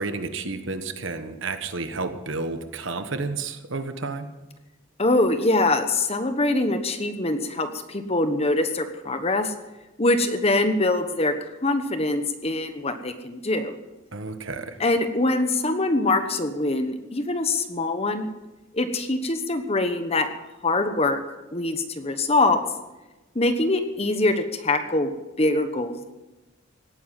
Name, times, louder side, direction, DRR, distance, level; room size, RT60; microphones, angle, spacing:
voice 1, 0.0-4.3 14.1-14.8, right 3 dB, 60° right, 8 dB, 1.3 m, -31 dB
voice 2, 5.0-9.5 10.0-11.3 11.6-13.7 14.8-18.3 18.7-20.3 20.6-21.2 21.5-22.6 23.3-25.1 25.4-26.1, left 2 dB, 30° left, 8 dB, 1.1 m, -23 dB
17.5 x 10.5 x 7.6 m, 1.1 s
head